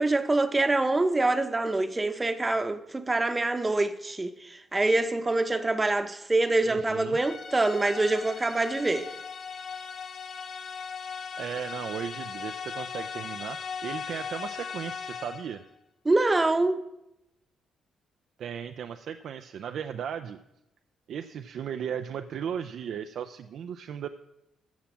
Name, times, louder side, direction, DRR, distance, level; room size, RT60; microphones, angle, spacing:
voice 1, 0.0-9.1 16.0-16.8, right 2 dB, 20° right, 0.9 m, -25 dB
voice 2, 6.6-7.2 11.4-15.6 18.4-20.4 21.1-24.1, right 8 dB, 70° right, 0.5 m, -36 dB
sound 1, 7.1-15.6, left 6 dB, 50° left, 1.1 m, -38 dB
14.5 x 5.9 x 7.4 m
cardioid pair, 90°, 0 cm